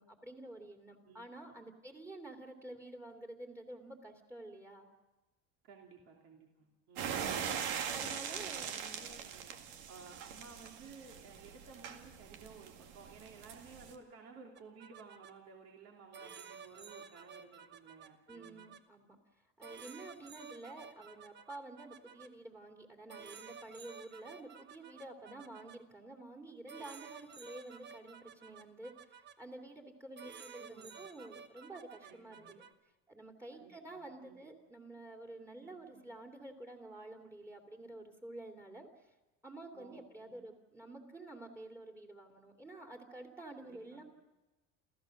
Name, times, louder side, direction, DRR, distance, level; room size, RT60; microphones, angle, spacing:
voice 1, 0.0-4.9 7.9-8.7 18.3-19.2 19.6-32.5 33.1-39.1 39.4-44.0, right 2 dB, 10° right, 2 dB, 2.6 m, -50 dB
voice 2, 5.6-7.3 8.3-9.5 9.9-18.7 25.3-25.5 30.6-31.1 32.0-32.6 33.5-34.5 35.6-36.0 39.7-40.6 43.6-44.0, right 4 dB, 55° right, 0 dB, 2.9 m, -56 dB
sound 1, 7.0-13.9, right 8 dB, 80° right, 2.1 m, -41 dB
sound 2, 14.6-15.3 16.1-18.8 19.6-22.3 23.1-25.8 26.7-29.3 30.2-32.7, right 6 dB, 35° right, 1.1 m, -53 dB
29.0 x 14.5 x 6.4 m, 1.1 s
cardioid pair, 120°, 29 cm